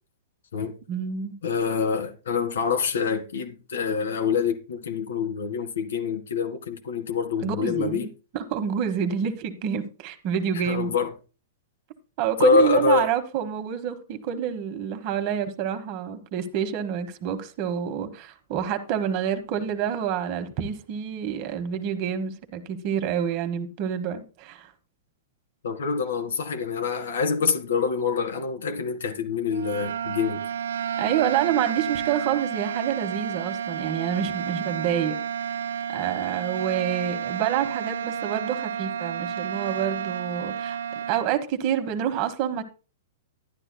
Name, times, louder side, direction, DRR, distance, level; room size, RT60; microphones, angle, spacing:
voice 1, 0.9-1.4 7.4-10.9 12.2-24.7 31.0-35.2 35.9-40.8 41.1-42.6, right 9 dB, 45° right, 1.2 m, -28 dB
voice 2, 1.4-8.1 10.5-11.1 12.4-13.1 25.6-30.4, left 5 dB, 90° left, 1.8 m, -25 dB
sound 1, 29.5-41.3, right 8 dB, 85° right, 0.4 m, -31 dB
11.5 x 9.9 x 2.2 m
hypercardioid pair, 140°, 0 cm